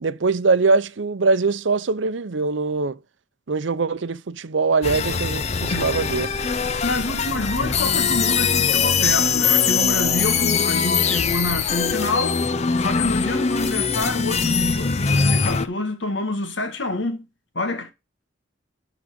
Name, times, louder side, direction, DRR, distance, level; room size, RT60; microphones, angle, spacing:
voice 1, 0.0-3.0 3.5-6.3, right 4 dB, 75° right, 0.6 m, -22 dB
sound 1, 4.8-15.7, left 5 dB, 35° left, 0.6 m, -22 dB
voice 2, 6.8-12.4 12.8-17.3 17.6-17.9, left 2 dB, 75° left, 1.7 m, -27 dB
11.5 x 4.0 x 6.2 m
head